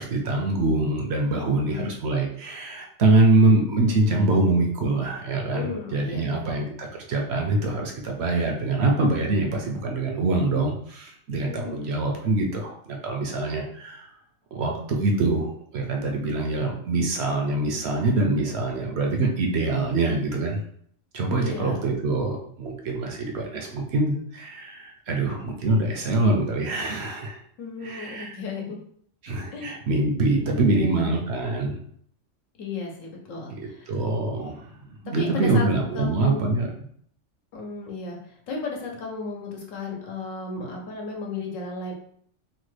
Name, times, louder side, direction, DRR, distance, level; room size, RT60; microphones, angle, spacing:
voice 1, 0.0-14.1 14.5-20.6 21.1-27.4 27.8-28.4 29.2-31.8 33.6-34.7 35.0-36.7, right 2 dB, 65° right, 1 dB, 0.7 m, -24 dB
voice 2, 1.3-1.9 5.5-6.6 11.4-11.9 21.4-21.8 27.6-28.8 29.5-29.8 30.4-31.1 32.6-33.9 35.2-35.7 35.9-36.6 37.5-41.9, left 3 dB, 85° left, 0 dB, 1.1 m, -34 dB
3.0 x 2.2 x 3.1 m, 0.64 s
omnidirectional pair, 1.3 m